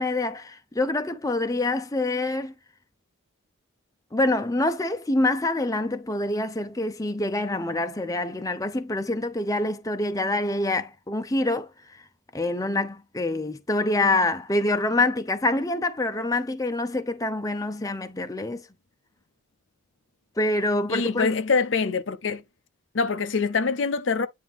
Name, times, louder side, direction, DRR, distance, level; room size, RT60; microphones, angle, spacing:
voice 1, 0.0-2.5 4.1-11.7 12.3-18.6 20.4-21.3, left 2 dB, 15° left, 0.6 m, -26 dB
voice 2, 20.9-22.4 22.9-24.3, left 4 dB, 65° left, 0.6 m, -24 dB
9.2 x 3.5 x 3.5 m
head